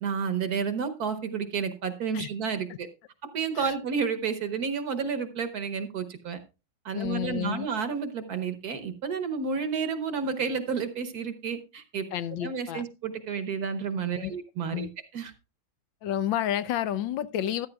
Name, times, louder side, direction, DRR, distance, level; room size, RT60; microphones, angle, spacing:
voice 1, 0.0-2.9 3.3-6.4 6.8-12.1 12.4-14.9 15.1-15.3, right 6 dB, 55° right, 1.4 m, -31 dB
voice 2, 6.9-7.7 12.1-12.8 14.1-14.3 14.7-14.9 16.0-17.7, left 11 dB, 75° left, 1.3 m, -30 dB
14.0 x 10.5 x 2.3 m
omnidirectional pair, 2.1 m